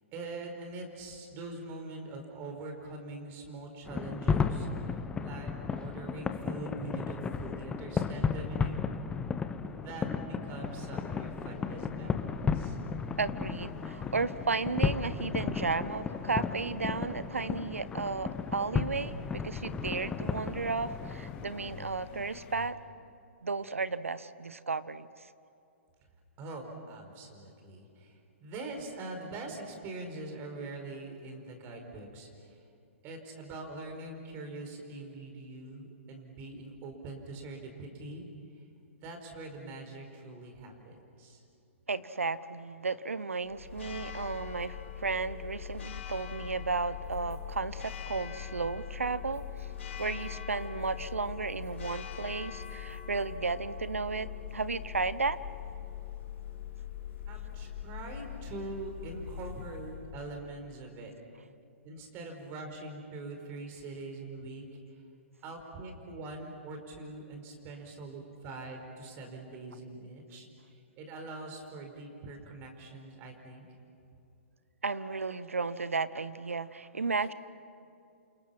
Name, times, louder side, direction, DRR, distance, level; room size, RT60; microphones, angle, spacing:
voice 1, 0.1-8.9 9.6-12.8 26.4-32.5 33.0-38.3 39.0-41.4 57.3-61.1 61.8-64.6 65.4-73.7, right 2 dB, 30° right, 4 dB, 4.9 m, -43 dB
sound 1, 3.9-21.9, left 5 dB, 15° left, 1.1 m, -34 dB
sound 2, 10.4-22.7, left 5 dB, 40° left, 2.6 m, -47 dB
voice 2, 13.2-22.8 23.4-25.1 41.9-49.7 50.0-55.4 74.8-77.3, right 4 dB, 85° right, 16 dB, 0.9 m, -34 dB
Church bell, 43.4-60.7, left 10 dB, 65° left, 2.8 m, -42 dB
28.5 x 27.5 x 6.0 m, 2.6 s
figure-of-eight pair, 120°, 7 cm